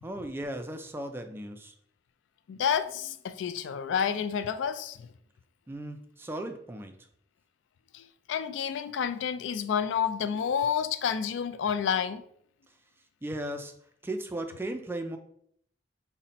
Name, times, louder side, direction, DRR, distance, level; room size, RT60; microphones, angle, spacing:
voice 1, 0.0-1.7 5.7-6.9 13.2-13.7 14.0-15.2, right 1 dB, 15° right, 0.3 m, -36 dB
voice 2, 2.5-5.1 7.9-12.2, left 7 dB, 80° left, 0.3 m, -29 dB
4.0 x 2.1 x 4.1 m
head